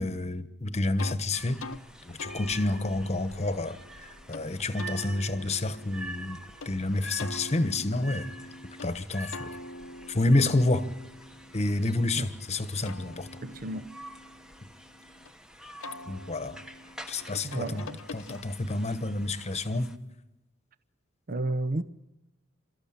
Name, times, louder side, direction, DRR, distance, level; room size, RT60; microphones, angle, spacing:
voice 1, 0.0-1.6 2.1-6.4 6.6-8.3 8.8-9.6 10.1-10.9 11.5-13.3 16.1-16.6 17.1-17.8 18.1-19.9, left 2 dB, 35° left, 1.2 m, -29 dB
sound 1, 1.0-1.2 1.6-1.8 2.2-4.4 4.8-6.7 7.2-8.9 9.3-12.2 12.6-15.3 15.8-18.8, left 2 dB, 70° left, 0.9 m, -45 dB
sound 2, 1.3-20.0, right 1 dB, 5° right, 1.0 m, -47 dB
voice 2, 13.4-13.9 17.4-18.0 21.3-21.8, right 2 dB, 45° right, 0.7 m, -32 dB
29.0 x 13.5 x 8.8 m
head